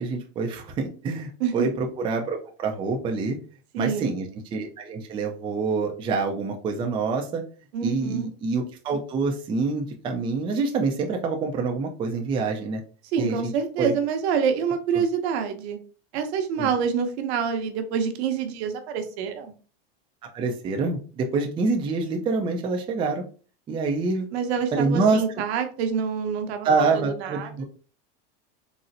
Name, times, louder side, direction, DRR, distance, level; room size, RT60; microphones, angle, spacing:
voice 1, 0.0-3.4 3.8-4.3 4.5-7.4 7.8-12.8 13.2-13.4 13.8-13.9 16.6-16.7 20.3-23.2 23.7-24.3 24.7-25.2 26.6-27.6, right 4 dB, 15° right, 2 dB, 0.3 m, -26 dB
voice 2, 1.4-1.7 3.7-4.1 7.7-8.3 13.1-15.8 16.1-19.5 24.3-27.6, right 7 dB, 75° right, 6 dB, 0.8 m, -27 dB
3.9 x 2.0 x 2.6 m, 0.39 s
supercardioid pair, 130°, 32 cm